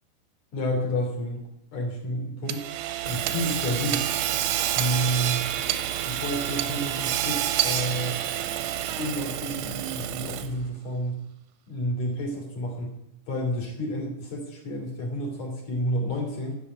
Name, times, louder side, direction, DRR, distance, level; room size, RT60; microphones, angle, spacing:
voice 1, 0.5-1.4 1.7-2.6 3.0-4.1 4.7-5.5 6.1-8.2 9.0-11.2 11.7-12.9 13.3-16.6, equal, 40° left, 1 dB, 3.8 m, -30 dB
Hammer / Sawing, 2.5-10.7, right 12 dB, 80° right, 2.6 m, -28 dB
11.0 x 6.8 x 9.3 m, 0.83 s
omnidirectional pair, 5.0 m